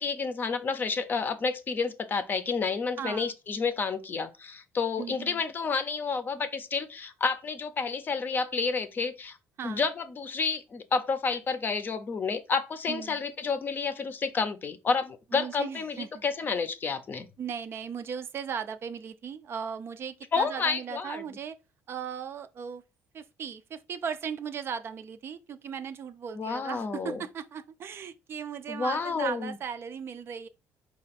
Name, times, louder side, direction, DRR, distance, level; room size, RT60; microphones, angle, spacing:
voice 1, 0.0-9.4 9.6-17.3 20.3-21.2 26.3-27.2 28.7-29.6, left 5 dB, 35° left, 0.5 m, -30 dB
voice 2, 3.0-3.3 5.0-5.4 9.6-9.8 12.9-13.2 15.3-16.2 17.4-21.6 21.9-22.8 23.1-30.5, right 7 dB, 45° right, 0.4 m, -37 dB
4.2 x 2.3 x 4.0 m
cardioid pair, 110°, 6 cm